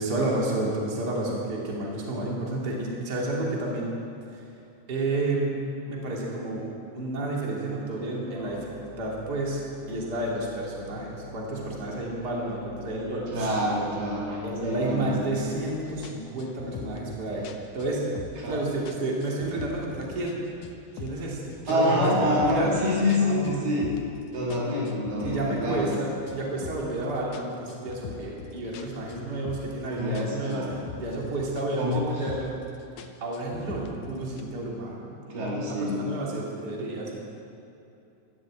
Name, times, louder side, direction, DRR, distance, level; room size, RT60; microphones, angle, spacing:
voice 1, 0.0-3.9 4.3-4.4 4.9-5.5 5.9-6.6 6.9-9.6 9.9-13.5 14.4-17.5 17.7-18.0 18.4-20.4 20.9-22.7 23.2-23.6 25.2-30.7 31.0-32.5 33.2-37.2, right 2 dB, 30° right, -3 dB, 3.0 m, -30 dB
sound 1, 8.3-16.1, left 2 dB, 25° left, 5.5 m, -45 dB
voice 2, 13.3-15.2 18.4-18.6 21.7-23.9 24.3-25.9 29.9-30.8 31.8-32.1 35.3-36.0, left 1 dB, 80° right, -4 dB, 4.7 m, -26 dB
sound 2, 15.5-15.7 16.0-18.6 18.9-20.4 20.6-21.3 21.7-24.2 24.5-27.0 27.3-29.9 30.1-31.7 31.9-32.6 33.0-34.4, left 5 dB, 70° left, 2.2 m, -42 dB
13.0 x 12.5 x 8.8 m, 2.7 s
omnidirectional pair, 3.8 m